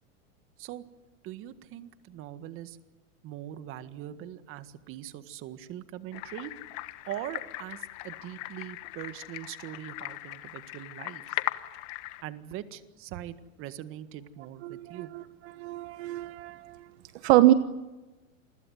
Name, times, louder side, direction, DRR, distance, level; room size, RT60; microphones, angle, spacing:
voice 1, 1.2-2.8 3.2-6.5 7.0-11.4 12.2-15.1, right 12 dB, 35° right, 12 dB, 1.7 m, -41 dB
sound 1, 6.1-12.2, left 19 dB, 40° left, 1.4 m, -38 dB
voice 2, 14.6-15.2 15.6-16.8 17.2-17.5, right 15 dB, 55° right, 12 dB, 1.2 m, -24 dB
28.5 x 21.5 x 9.4 m, 1.1 s
supercardioid pair, 150°, 40 cm